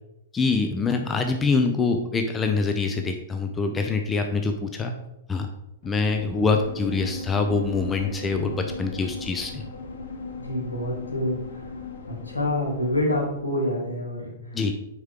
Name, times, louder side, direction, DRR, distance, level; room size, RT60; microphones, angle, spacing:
voice 1, 0.3-4.9 5.3-5.5 5.8-9.6 14.5-14.7, left 4 dB, 15° left, 5 dB, 0.5 m, -25 dB
sound 1, 5.8-13.7, left 3 dB, 60° left, 0.8 m, -38 dB
voice 2, 10.4-11.7 12.1-14.6, left 1 dB, 80° left, -2 dB, 1.9 m, -27 dB
6.4 x 4.8 x 3.5 m, 0.86 s
figure-of-eight pair, 105°, 0 cm